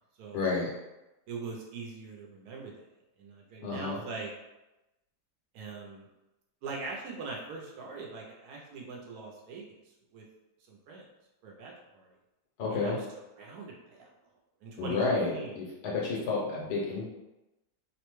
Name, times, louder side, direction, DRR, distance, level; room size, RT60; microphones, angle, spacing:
voice 1, 0.3-0.7 3.6-4.0 12.6-13.0 14.8-17.1, left 3 dB, 80° left, -4 dB, 1.4 m, -30 dB
voice 2, 1.3-2.7 3.2-4.3 5.5-6.1 6.6-9.8 10.1-10.2 10.7-11.0 11.4-12.1 12.7-13.0 13.4-14.1 14.6-15.5, right 4 dB, 70° right, -1 dB, 1.1 m, -42 dB
3.2 x 2.1 x 3.0 m, 0.98 s
omnidirectional pair, 1.7 m